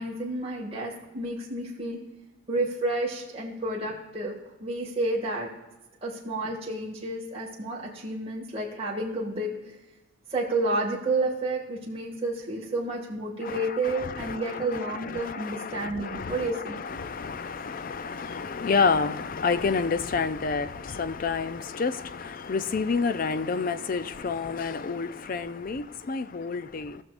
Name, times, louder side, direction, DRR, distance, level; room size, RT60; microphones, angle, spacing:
voice 1, 0.0-2.0 2.5-4.3 4.6-5.5 6.0-9.8 10.3-16.8, right 2 dB, 30° right, 2.0 m, -30 dB
voice 2, 14.0-14.6 15.0-27.0, left 4 dB, 40° left, 0.4 m, -29 dB
17.5 x 6.4 x 2.5 m
head